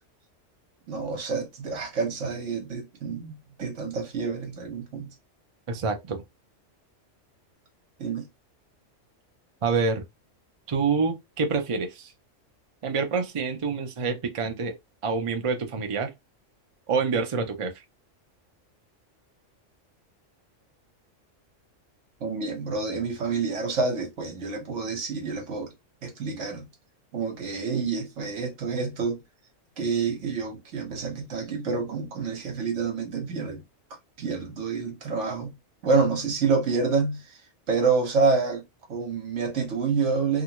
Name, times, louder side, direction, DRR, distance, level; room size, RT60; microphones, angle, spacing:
voice 1, 0.9-5.1 8.0-8.3 22.2-25.7 26.0-26.7 27.1-29.2 29.8-33.6 34.2-35.5 35.8-37.4 37.7-38.6 38.9-40.4, right 4 dB, 70° right, 1.3 m, -28 dB
voice 2, 5.7-6.2 9.6-10.0 10.7-12.1 12.8-14.8 15.0-16.1 16.9-17.7, right 4 dB, 45° right, 0.4 m, -27 dB
2.9 x 2.4 x 2.8 m
omnidirectional pair, 1.3 m